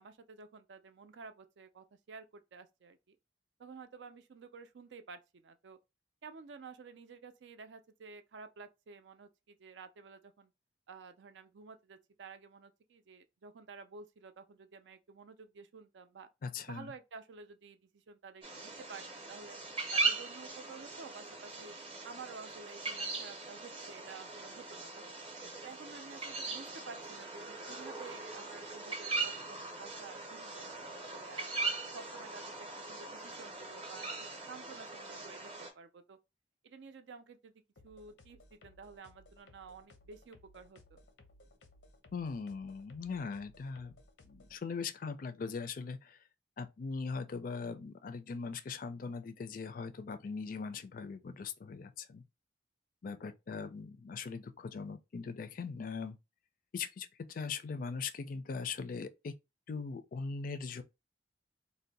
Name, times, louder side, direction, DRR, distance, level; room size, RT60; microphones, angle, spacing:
voice 1, 0.0-3.2 3.6-5.8 6.2-10.5 10.9-16.3 16.7-19.6 19.9-21.7 22.0-25.1 25.6-31.5 31.9-36.2 36.6-37.5 37.8-41.0, right 5 dB, 80° right, 0.4 m, -52 dB
voice 2, 16.4-16.9 42.1-43.9 44.2-46.2 46.6-52.2 53.0-56.2 56.7-59.3 59.7-60.8, left 5 dB, 50° left, 0.4 m, -40 dB
sound 1, 18.4-35.7, right 3 dB, 30° right, 0.6 m, -40 dB
sound 2, 37.8-44.6, left 2 dB, 85° left, 0.6 m, -61 dB
2.6 x 2.1 x 3.9 m
head